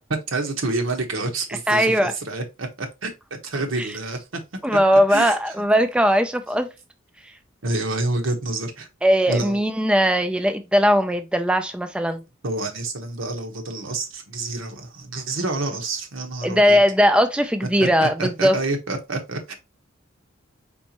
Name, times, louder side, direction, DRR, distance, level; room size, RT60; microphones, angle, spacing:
voice 1, 0.3-4.4 5.1-5.4 7.6-8.9 9.3-9.6 12.4-16.8 17.8-19.6, right 2 dB, 80° right, 1.1 m, -28 dB
voice 2, 1.7-2.1 3.8-3.9 4.6-6.7 9.0-12.2 16.4-18.6, equal, 5° right, 0.3 m, -19 dB
4.5 x 4.1 x 2.9 m
head